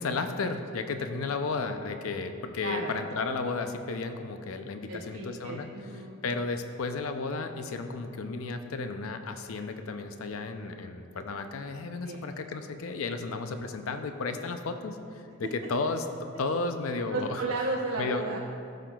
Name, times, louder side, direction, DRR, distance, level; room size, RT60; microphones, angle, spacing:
voice 1, 0.0-5.7 6.2-16.1 16.4-17.4 18.0-18.2, left 3 dB, 75° left, 7 dB, 0.5 m, -33 dB
voice 2, 2.6-2.9 4.9-6.2 12.0-12.2 17.1-18.4, right 3 dB, 80° right, -2 dB, 0.7 m, -34 dB
14.5 x 5.8 x 2.3 m, 2.5 s
head